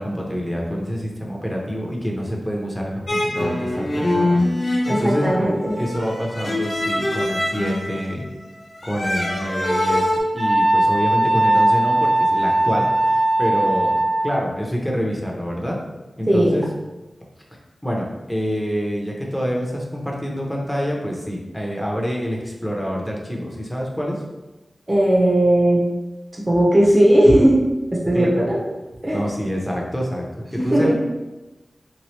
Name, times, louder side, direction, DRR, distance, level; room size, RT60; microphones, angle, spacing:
voice 1, 0.0-4.4 4.9-5.3 5.8-8.2 8.8-13.9 14.2-15.8 16.2-16.6 17.8-24.2 28.1-28.3 29.1-30.9, equal, 5° left, -2 dB, 0.7 m, -26 dB
sound 1, 3.1-10.2, left 1 dB, 55° left, 0.7 m, -24 dB
voice 2, 4.9-5.8 16.3-16.6 24.9-25.8 26.3-28.6 29.0-29.2 30.6-30.9, right 1 dB, 30° right, -4 dB, 1.0 m, -17 dB
Wind instrument woodwind instrument, 10.4-14.5, right 1 dB, 80° right, 0.9 m, -18 dB
3.4 x 3.0 x 3.2 m, 1.1 s
wide cardioid pair, 90°, 0 cm